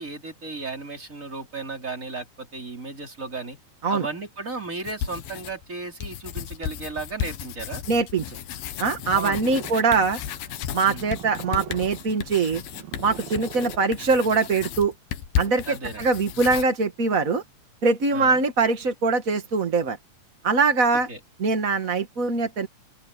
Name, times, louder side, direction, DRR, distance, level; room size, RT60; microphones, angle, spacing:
voice 1, 0.0-3.6 3.9-7.8 9.1-9.5 10.8-11.1 15.7-16.1 18.1-18.4 20.9-21.2, right 3 dB, 20° right, 4.1 m, -35 dB
sound 1, 4.8-5.6 6.0-16.7, left 9 dB, 90° left, 3.1 m, -34 dB
voice 2, 7.9-8.4 8.8-10.2 10.7-12.6 13.0-14.9 15.4-17.4 17.8-20.0 20.4-21.1 21.4-22.7, right 4 dB, 40° right, 1.2 m, -22 dB
Purr, 8.7-14.4, right 8 dB, 80° right, 4.5 m, -42 dB
open air
omnidirectional pair, 4.1 m